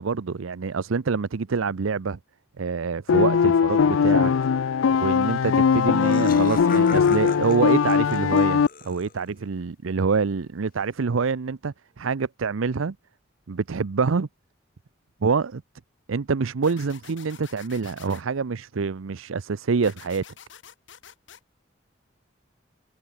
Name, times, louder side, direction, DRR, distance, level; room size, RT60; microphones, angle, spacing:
voice 1, 0.0-2.2 2.6-4.3 5.0-13.0 13.5-14.3 15.2-15.6 16.1-20.2, right 5 dB, 90° right, 0.6 m, -26 dB
sound 1, 3.1-8.7, left 6 dB, 85° left, 0.4 m, -20 dB
Laughter, 5.4-5.5 5.7-9.4, left 5 dB, 45° left, 1.5 m, -41 dB
sound 2, 16.6-18.2 19.8-21.4, left 8 dB, 70° left, 1.4 m, -47 dB
head